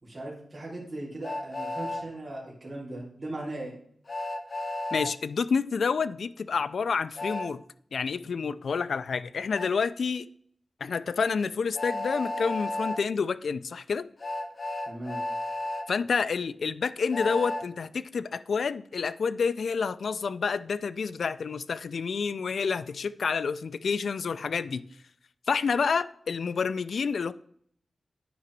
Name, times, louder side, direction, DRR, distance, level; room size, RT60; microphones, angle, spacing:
voice 1, 0.0-3.7 14.9-15.2, right 1 dB, 35° right, 3.1 m, -38 dB
Train, 1.2-2.0 4.1-5.1 7.2-7.5 9.5-9.7 11.7-13.0 14.2-15.8 17.1-17.6, left 2 dB, 40° left, 0.7 m, -32 dB
voice 2, 4.9-7.6 7.9-10.3 10.8-14.1 15.9-24.8 25.5-27.3, left 5 dB, 75° left, 0.3 m, -29 dB
10.0 x 5.0 x 4.6 m
wide cardioid pair, 130°, 0 cm